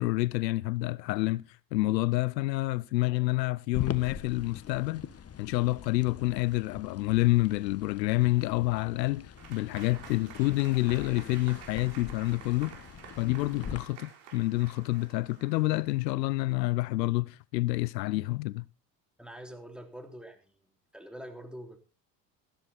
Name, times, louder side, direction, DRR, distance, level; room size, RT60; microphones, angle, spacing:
voice 1, 0.0-1.4 1.7-5.0 5.4-12.8 13.2-18.6, left 20 dB, 80° left, 0.6 m, -28 dB
sound 1, 3.7-13.8, left 7 dB, 30° left, 1.4 m, -43 dB
Applause / Crowd, 9.4-16.2, right 7 dB, 70° right, 4.1 m, -50 dB
voice 2, 19.2-20.6 20.9-21.8, equal, ahead, 3.3 m, -45 dB
14.0 x 13.0 x 4.2 m
hypercardioid pair, 65°, 50 cm